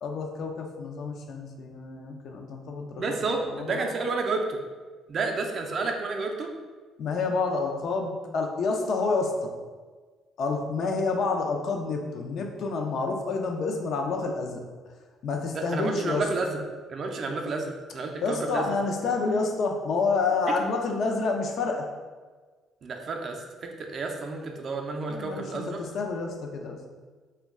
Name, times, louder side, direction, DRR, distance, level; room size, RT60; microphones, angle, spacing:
voice 1, 0.0-3.2 3.5-3.8 7.0-9.5 10.4-14.6 15.2-16.2 18.2-21.9 25.1-26.8, left 4 dB, 60° left, 2 dB, 0.4 m, -28 dB
voice 2, 3.0-4.6 5.1-6.5 15.5-16.6 16.9-18.7 22.8-25.8, right 3 dB, 50° right, 2 dB, 0.4 m, -30 dB
2.2 x 2.1 x 3.5 m, 1.4 s
cardioid pair, 85°, 0 cm